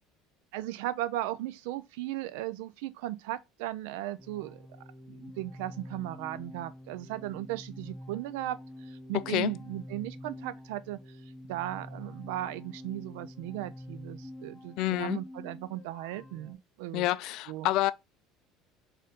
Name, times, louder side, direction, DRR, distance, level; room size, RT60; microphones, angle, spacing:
voice 1, 0.5-4.6 5.1-11.0 11.5-17.2 17.5-17.7, right 14 dB, 80° right, 0.4 m, -37 dB
sound 1, 4.2-16.5, left 1 dB, 5° left, 1.9 m, -47 dB
voice 2, 9.1-9.5 14.8-15.2 16.9-17.9, left 16 dB, 65° left, 0.3 m, -28 dB
4.1 x 2.6 x 3.6 m
supercardioid pair, 105°, 0 cm